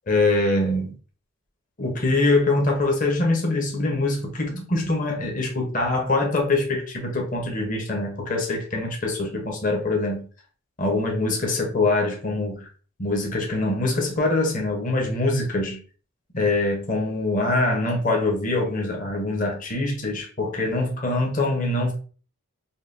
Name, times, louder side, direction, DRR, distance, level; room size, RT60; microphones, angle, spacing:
voice 1, 0.1-0.9 1.8-10.3 10.8-12.7 13.0-15.8 16.3-21.9, left 2 dB, 35° left, 0.8 m, -24 dB
5.4 x 2.2 x 2.6 m
head